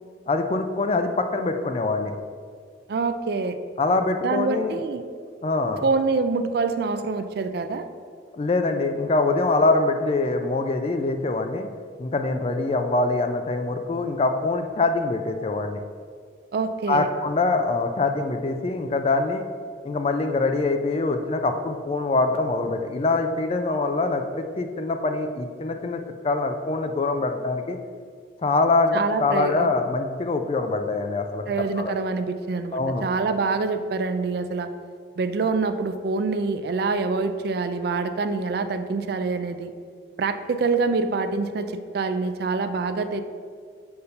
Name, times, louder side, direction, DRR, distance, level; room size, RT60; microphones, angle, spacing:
voice 1, 0.3-2.1 3.8-4.8 5.4-5.8 8.3-11.7 12.0-15.8 16.9-19.4 19.8-27.8 28.4-31.5 31.8-31.9 32.7-33.0, left 3 dB, 30° left, 6 dB, 0.3 m, -24 dB
voice 2, 2.9-3.6 4.2-5.0 5.8-7.9 16.5-17.1 28.9-29.7 31.5-34.7 35.2-39.7 40.2-43.2, right 4 dB, 55° right, 10 dB, 0.3 m, -25 dB
6.6 x 2.7 x 5.6 m, 2.1 s
head